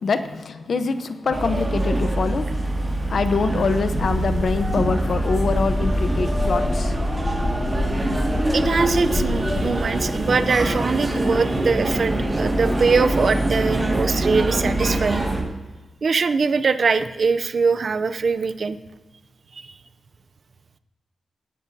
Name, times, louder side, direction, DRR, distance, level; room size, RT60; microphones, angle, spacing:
voice 1, 0.0-7.0 7.7-7.8, left 4 dB, 60° left, 9 dB, 0.9 m, -25 dB
sound 1, 1.3-15.4, right 1 dB, 20° right, 2.0 m, -24 dB
sound 2, 3.9-9.7, left 2 dB, 30° left, 1.0 m, -28 dB
voice 2, 8.5-15.3 16.0-18.8 19.6-19.7, right 4 dB, 50° right, 12 dB, 0.6 m, -22 dB
18.0 x 10.5 x 2.8 m, 1.2 s
wide cardioid pair, 130°, 0 cm